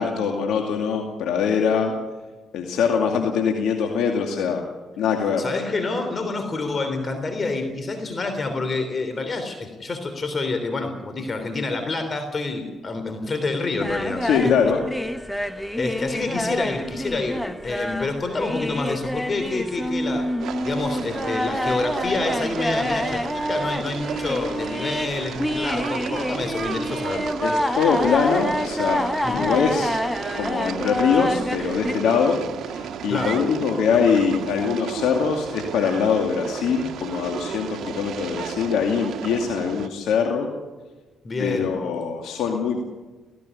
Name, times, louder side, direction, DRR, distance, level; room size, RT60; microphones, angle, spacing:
voice 1, 0.0-1.9 2.5-4.6 5.0-5.4 14.2-14.8 27.4-29.9 30.3-32.4 32.7-40.5 41.4-42.8, left 6 dB, 85° left, 2 dB, 2.4 m, -23 dB
voice 2, 5.4-14.5 15.8-20.3 20.6-27.3 29.2-29.5 33.1-33.4 41.2-41.7, left 3 dB, 35° left, 7 dB, 3.2 m, -28 dB
sound 1, 13.8-31.9, equal, 5° left, 1.4 m, -27 dB
sound 2, 20.4-39.9, right 8 dB, 70° right, 1.5 m, -34 dB
17.5 x 17.0 x 9.9 m, 1.3 s
cardioid pair, 90°, 0 cm